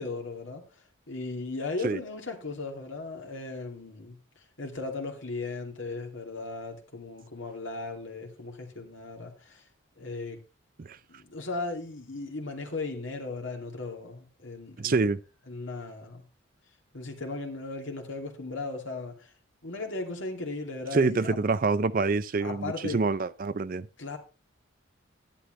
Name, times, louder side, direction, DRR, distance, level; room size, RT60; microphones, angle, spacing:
voice 1, 0.0-9.6 10.0-10.4 11.1-15.0 15.5-16.2 16.9-19.3 19.6-21.4 22.4-23.0 24.0-24.2, left 3 dB, 70° left, 2.5 m, -37 dB
voice 2, 14.8-15.2 20.9-23.9, right 3 dB, 45° right, 0.4 m, -26 dB
11.5 x 10.0 x 3.2 m
head